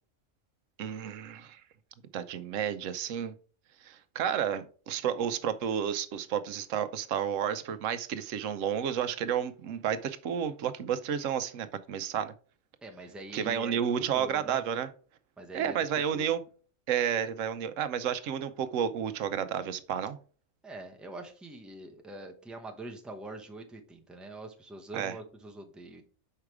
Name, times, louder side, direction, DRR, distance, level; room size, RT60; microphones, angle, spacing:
voice 1, 0.8-1.6 2.1-3.3 3.8-12.3 13.3-14.9 15.5-16.4 16.9-20.2 24.9-25.1, right 8 dB, 80° right, 1.0 m, -31 dB
voice 2, 12.8-13.8 14.1-14.6 15.4-15.8 16.1-16.3 20.6-26.0, right 2 dB, ahead, 0.8 m, -44 dB
5.6 x 4.9 x 4.6 m
omnidirectional pair, 1.3 m